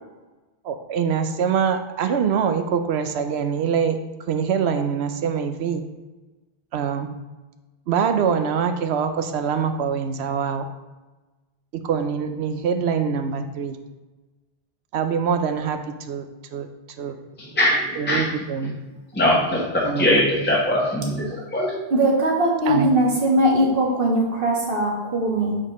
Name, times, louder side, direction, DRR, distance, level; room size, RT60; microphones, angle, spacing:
voice 1, 0.6-4.0 4.3-5.8 6.7-7.1 7.9-10.7 11.7-13.8 14.9-16.7 17.0-17.2 18.0-18.7 19.8-20.4 22.7-22.9, right 7 dB, 80° right, 8 dB, 0.9 m, -24 dB
voice 2, 17.5-18.7 19.1-21.8, left 1 dB, 10° left, -5 dB, 1.0 m, -22 dB
voice 3, 21.9-25.6, right 1 dB, 55° right, -2 dB, 1.6 m, -20 dB
7.6 x 4.2 x 3.0 m, 1.2 s
omnidirectional pair, 1.1 m